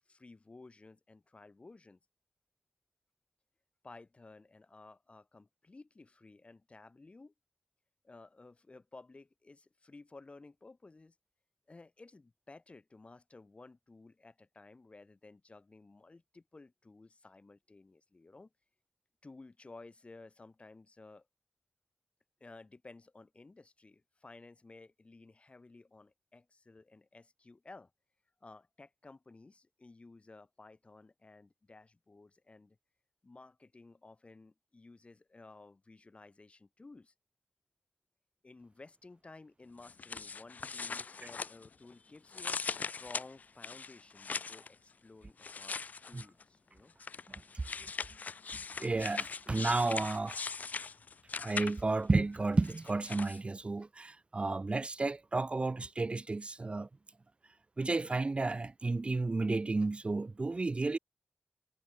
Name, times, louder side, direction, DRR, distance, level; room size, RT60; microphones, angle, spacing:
voice 1, 0.0-2.0 3.8-7.3 8.0-11.2 11.7-18.5 19.2-21.3 22.4-27.9 28.4-32.8 33.2-37.1 38.4-46.9, left 3 dB, 40° left, 7.2 m, -55 dB
sound 1, 39.8-41.9 42.3-44.7 45.4-46.4 47.0-52.0 52.6-53.4, left 5 dB, 60° left, 0.3 m, -40 dB
voice 2, 48.5-50.4 51.4-56.9 57.8-61.0, right 3 dB, 40° right, 0.8 m, -32 dB
wide cardioid pair, 80°, 3 cm